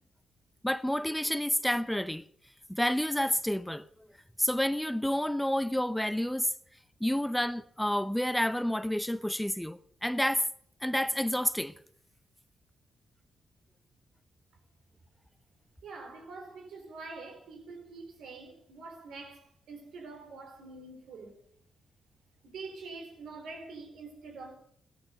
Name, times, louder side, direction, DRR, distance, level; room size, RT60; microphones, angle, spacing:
voice 1, 0.6-2.2 2.7-3.9 4.4-6.5 7.0-10.5 10.8-11.8, equal, 5° left, 0.7 m, -29 dB
voice 2, 15.8-21.4 22.4-24.6, right 3 dB, 75° right, 3.9 m, -45 dB
17.0 x 12.5 x 6.6 m
hypercardioid pair, 45°, 0 cm